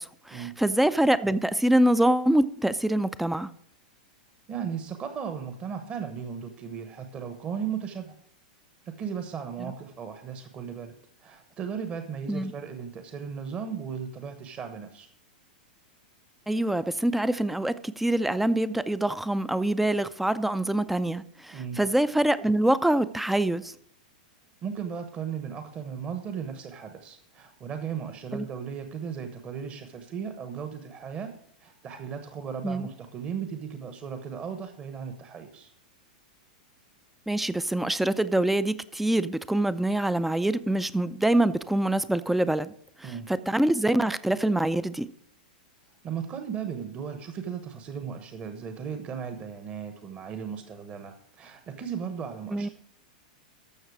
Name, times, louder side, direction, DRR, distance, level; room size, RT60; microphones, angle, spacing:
voice 1, 0.0-3.5 9.6-9.7 12.3-12.5 16.5-23.7 28.3-28.4 32.6-32.9 37.3-42.7 43.0-45.1 52.5-52.7, right 1 dB, 5° right, 0.5 m, -25 dB
voice 2, 4.5-8.2 8.9-10.9 11.2-15.1 21.5-21.8 24.6-31.3 31.6-35.7 43.0-43.3 46.0-52.7, right 7 dB, 30° right, 1.1 m, -36 dB
13.5 x 6.4 x 4.8 m
figure-of-eight pair, 95°, 4 cm